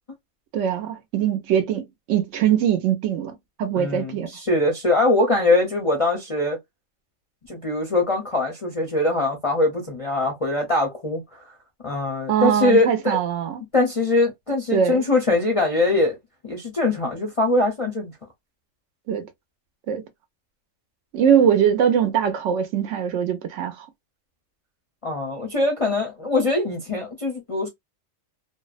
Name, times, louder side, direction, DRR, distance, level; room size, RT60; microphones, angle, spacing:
voice 1, 0.5-4.3 12.3-13.6 14.7-15.0 19.1-19.3 19.9-20.0 21.1-23.9, right 8 dB, 70° right, 0.9 m, -22 dB
voice 2, 3.7-6.6 7.5-11.4 11.8-13.2 13.7-16.2 16.4-18.1 25.0-27.7, left 2 dB, 40° left, 0.5 m, -22 dB
2.6 x 2.0 x 2.3 m
omnidirectional pair, 1.4 m